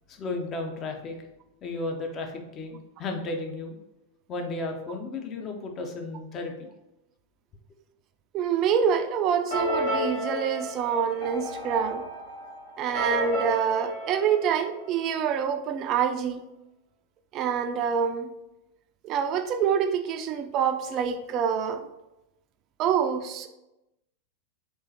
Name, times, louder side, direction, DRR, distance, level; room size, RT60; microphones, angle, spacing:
voice 1, 0.1-1.2 1.6-3.8 4.3-6.7, left 2 dB, 30° left, 3 dB, 0.6 m, -34 dB
voice 2, 8.3-12.0 12.8-16.4 17.3-18.3 19.0-21.9 22.8-23.5, right 7 dB, 35° right, 8 dB, 0.3 m, -26 dB
sound 1, 9.5-15.2, equal, 55° left, 1.3 m, -32 dB
3.6 x 3.0 x 2.7 m, 0.91 s
figure-of-eight pair, 90°, 0 cm